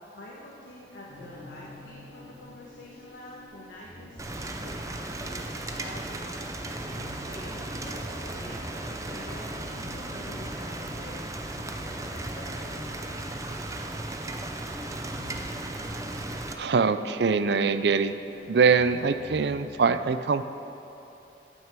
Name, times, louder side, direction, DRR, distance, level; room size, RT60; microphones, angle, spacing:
voice 1, 0.1-11.2 11.5-13.4, left 1 dB, 90° left, -5 dB, 1.5 m, -46 dB
sound 1, 1.1-19.8, left 1 dB, 35° left, 2.4 m, -48 dB
Rain, 4.2-16.5, right 2 dB, 20° right, 0.6 m, -36 dB
voice 2, 16.6-18.1 18.5-20.4, right 5 dB, 70° right, 10 dB, 0.5 m, -23 dB
12.5 x 6.4 x 7.4 m, 3.0 s
head